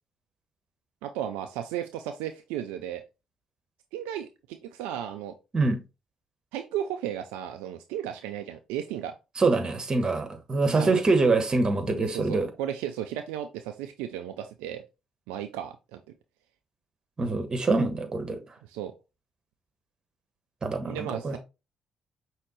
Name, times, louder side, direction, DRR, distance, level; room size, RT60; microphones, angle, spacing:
voice 1, 1.0-3.0 3.9-5.3 6.5-9.1 10.7-11.0 12.0-14.8 15.3-16.0 18.7-18.9 20.8-21.4, right 10 dB, 75° right, 0.4 m, -34 dB
voice 2, 9.4-12.5 17.2-18.4 20.6-21.4, right 3 dB, 35° right, 1.3 m, -25 dB
5.7 x 3.1 x 3.0 m
hypercardioid pair, 45°, 2 cm